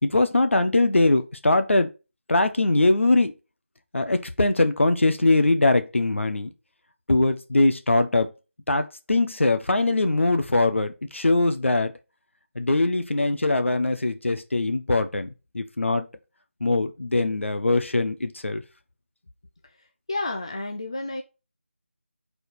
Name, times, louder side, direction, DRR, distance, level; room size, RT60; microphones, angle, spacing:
voice 1, 0.0-1.9 2.3-3.3 3.9-6.5 7.1-8.3 8.7-11.9 12.5-15.3 15.5-16.1 16.6-18.6, left 2 dB, 75° left, 1.2 m, -22 dB
voice 2, 20.1-21.2, left 2 dB, 25° left, 0.5 m, -30 dB
4.8 x 4.3 x 5.0 m
figure-of-eight pair, 180°, 7 cm